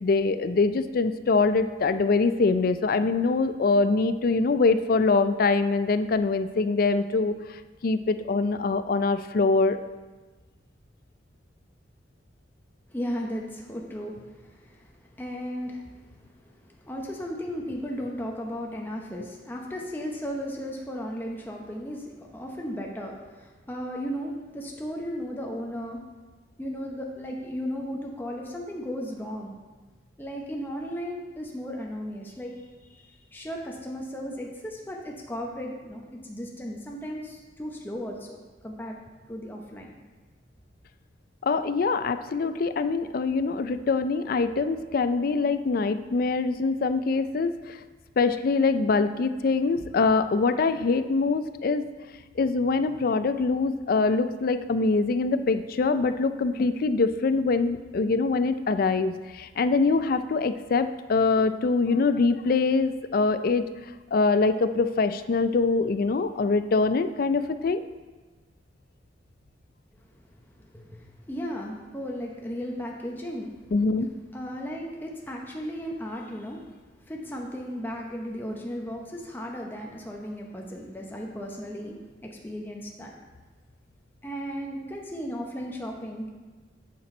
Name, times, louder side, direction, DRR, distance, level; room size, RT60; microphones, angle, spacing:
voice 1, 0.0-7.3 7.8-9.8 41.4-47.8 48.2-51.8 52.4-63.6 64.1-67.8 73.7-74.1, left 4 dB, 50° left, 11 dB, 0.4 m, -24 dB
voice 2, 12.9-26.0 26.6-29.5 30.2-38.4 38.6-39.0 39.3-40.0 69.9-70.0 70.4-73.5 74.3-76.7 77.0-83.1 84.2-86.3, equal, 10° left, -1 dB, 0.8 m, -35 dB
8.4 x 5.9 x 4.3 m, 1.3 s
head